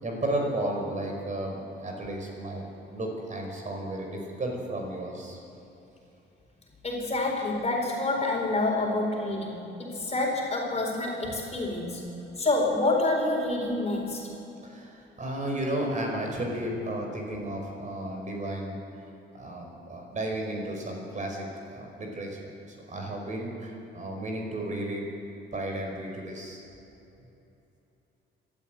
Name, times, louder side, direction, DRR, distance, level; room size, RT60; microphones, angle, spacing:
voice 1, 0.0-2.7 2.9-5.4 14.6-18.8 19.3-25.1 25.5-26.6, right 1 dB, 40° right, 1 dB, 5.2 m, -33 dB
voice 2, 6.8-12.1 12.4-14.2, left 2 dB, 35° left, 0 dB, 4.5 m, -27 dB
22.5 x 12.5 x 9.2 m, 2.9 s
cardioid pair, 90°, 20 cm